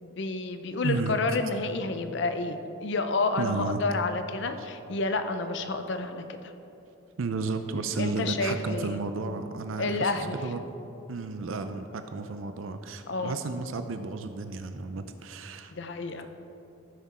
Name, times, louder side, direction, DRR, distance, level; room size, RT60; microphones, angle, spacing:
voice 1, 0.0-6.5 8.0-9.0 9.8-10.4 13.1-13.3 15.7-16.3, left 3 dB, 55° left, 8 dB, 0.6 m, -30 dB
voice 2, 0.8-1.2 3.4-3.8 4.6-4.7 7.2-10.6 11.1-15.7, right 3 dB, 70° right, 8 dB, 0.5 m, -33 dB
14.5 x 6.0 x 4.2 m, 2.9 s
head